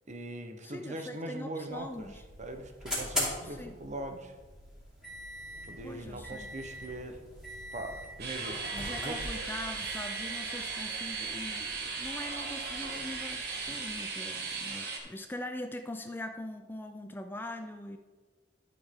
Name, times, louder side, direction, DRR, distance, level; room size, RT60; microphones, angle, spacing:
voice 1, 0.1-2.1 2.4-4.3 5.6-7.2 7.7-9.2, right 1 dB, 40° right, 6 dB, 0.9 m, -41 dB
voice 2, 0.6-2.2 3.4-3.8 5.8-6.5 8.7-18.0, left 1 dB, 10° left, 7 dB, 0.4 m, -42 dB
sound 1, 1.7-14.1, equal, 5° right, 2.9 m, -42 dB
sound 2, 8.2-15.0, right 4 dB, 60° right, 1.3 m, -37 dB
11.5 x 6.3 x 3.7 m, 1.3 s
head